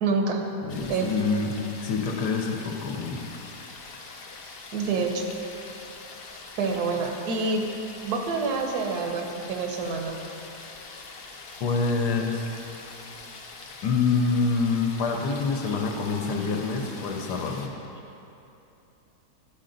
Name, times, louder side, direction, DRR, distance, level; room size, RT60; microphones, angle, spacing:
voice 1, 0.0-0.4 0.9-1.1 4.7-5.2 6.6-7.6 8.0-10.2, right 4 dB, 75° right, 2 dB, 1.3 m, -27 dB
voice 2, 0.6-1.6 1.8-3.2 11.6-12.5 13.8-17.7, left 4 dB, 90° left, 2 dB, 1.3 m, -26 dB
sound 1, 0.7-17.7, left 4 dB, 60° left, 0.6 m, -43 dB
11.0 x 4.3 x 3.8 m, 2.9 s
omnidirectional pair, 1.7 m